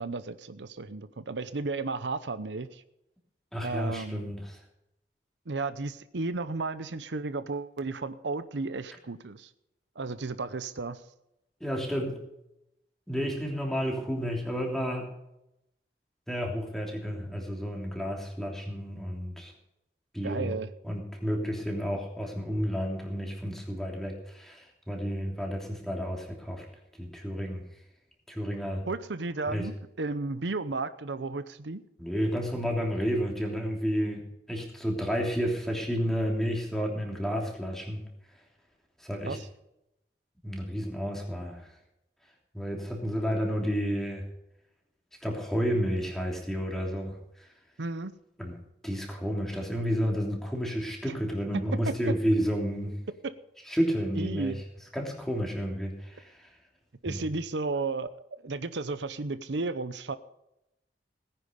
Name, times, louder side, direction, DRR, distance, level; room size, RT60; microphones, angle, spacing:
voice 1, 0.0-2.8 3.6-4.3 5.5-9.5 10.0-11.0 20.2-20.7 28.9-31.8 39.2-39.5 47.8-48.1 51.8-51.9 54.2-54.6 57.0-58.1 58.4-60.2, right 3 dB, 90° right, 13 dB, 0.8 m, -33 dB
voice 2, 3.5-4.6 11.6-12.2 13.1-15.1 16.3-19.5 20.1-20.5 20.8-26.6 27.0-27.6 28.3-28.8 29.5-29.7 32.0-38.0 39.0-39.4 40.4-41.7 42.5-44.2 45.2-47.5 48.4-48.6 48.8-53.0 53.6-54.6 54.9-56.5 57.0-57.2, equal, ahead, 0 dB, 3.1 m, -31 dB
18.0 x 10.0 x 5.2 m, 0.85 s
head